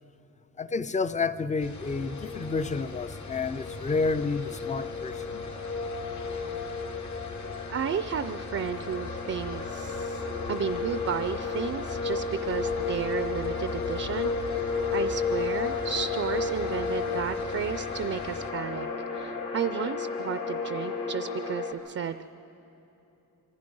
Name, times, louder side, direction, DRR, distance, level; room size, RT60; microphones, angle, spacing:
voice 1, 0.6-5.4, left 4 dB, 25° left, 0.4 m, -30 dB
sound 1, 1.6-18.5, left 3 dB, 60° left, 1.4 m, -42 dB
sound 2, 1.8-21.7, left 4 dB, 75° left, 2.6 m, -33 dB
voice 2, 7.7-10.2 10.5-18.9 19.1-22.3, right 7 dB, 45° right, 0.4 m, -33 dB
26.5 x 24.5 x 5.4 m
wide cardioid pair, 180°, 33 cm